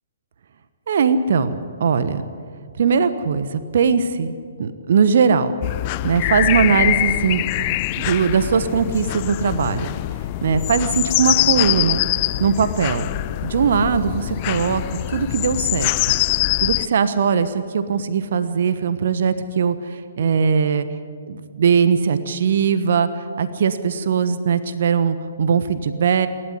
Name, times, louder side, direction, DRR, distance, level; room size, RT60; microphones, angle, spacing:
voice 1, 0.9-1.5 1.8-2.2 2.8-5.5 6.0-7.4 8.0-9.9 10.4-12.0 12.4-13.1 13.4-14.8 15.1-15.9 16.6-19.8 20.2-20.9 21.3-23.1 23.4-26.3, right 6 dB, 55° right, 12 dB, 1.2 m, -20 dB
sound 1, 5.6-16.9, left 19 dB, 35° left, 0.5 m, -23 dB
28.5 x 12.0 x 9.8 m, 2.2 s
figure-of-eight pair, 125°, 0 cm